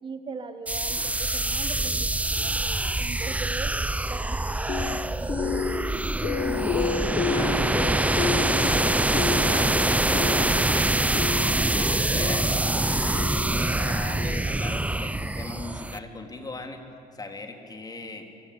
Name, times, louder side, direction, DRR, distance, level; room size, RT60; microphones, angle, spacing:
voice 1, 0.0-3.8 4.1-6.0, right 4 dB, 30° right, 8 dB, 1.4 m, -41 dB
sound 1, 0.7-16.0, right 2 dB, 10° right, 0.8 m, -25 dB
sound 2, 4.7-14.8, left 6 dB, 40° left, 1.2 m, -32 dB
voice 2, 7.1-11.3 11.7-12.4 12.8-16.8 17.1-18.2, left 2 dB, 25° left, 4 dB, 3.7 m, -39 dB
27.0 x 24.5 x 8.7 m, 2.2 s
cardioid pair, 110°, 17 cm